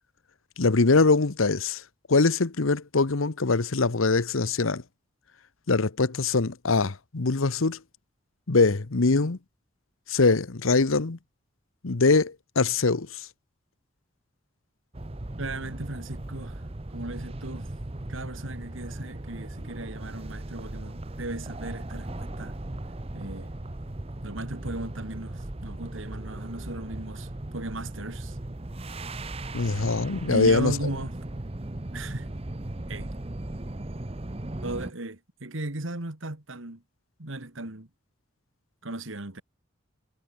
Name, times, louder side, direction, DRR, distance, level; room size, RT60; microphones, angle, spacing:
voice 1, 0.6-1.8 2.1-4.8 5.7-7.8 8.5-9.4 10.1-11.2 11.8-13.1 29.5-30.7, left 3 dB, 85° left, 1.0 m, -23 dB
sound 1, 14.9-34.9, right 1 dB, 30° right, 0.9 m, -37 dB
voice 2, 15.4-16.6 16.9-17.7 18.1-22.6 23.1-23.5 24.2-28.4 30.2-31.2 31.9-32.3 32.9-33.1 34.6-36.8 37.2-37.9 38.8-39.4, right 2 dB, 75° right, 2.4 m, -36 dB
head